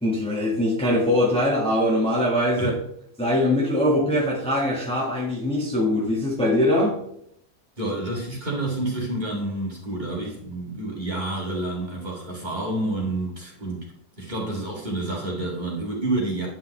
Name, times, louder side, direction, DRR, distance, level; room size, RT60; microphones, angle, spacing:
voice 1, 0.0-2.7 3.2-7.0, left 1 dB, 5° left, -3 dB, 1.5 m, -22 dB
voice 2, 7.8-13.9 14.2-16.5, right 2 dB, 30° right, -4 dB, 2.3 m, -29 dB
10.0 x 5.4 x 3.3 m, 0.69 s
omnidirectional pair, 1.7 m